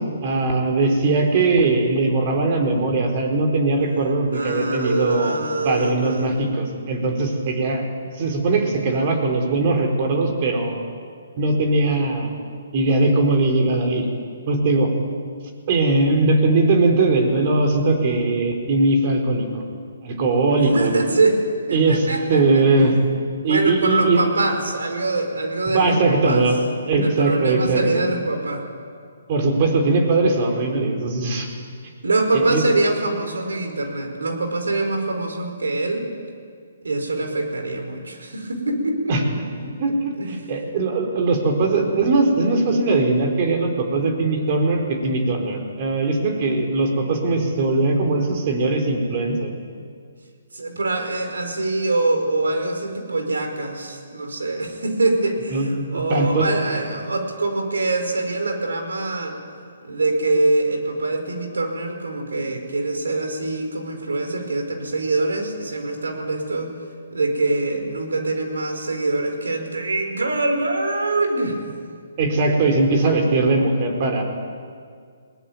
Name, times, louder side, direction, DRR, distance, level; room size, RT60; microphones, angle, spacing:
voice 1, 0.2-5.4 5.6-10.8 11.4-12.3 12.7-14.1 14.5-14.9 15.7-19.6 20.0-20.9 21.7-23.0 23.4-24.2 25.7-28.0 29.3-31.5 32.3-32.6 39.1-39.3 39.8-40.1 40.5-49.5 55.5-56.5 56.9-57.1 72.2-74.2, right 3 dB, 40° right, 3 dB, 4.6 m, -20 dB
voice 2, 4.3-6.3 20.5-21.4 21.7-22.9 23.4-26.4 27.0-28.6 32.0-36.1 36.8-39.2 39.7-40.5 50.5-59.4 59.8-66.7 67.1-71.8, right 2 dB, 85° right, 5 dB, 4.8 m, -24 dB
20.5 x 19.0 x 9.6 m, 2.1 s
hypercardioid pair, 145°, 0 cm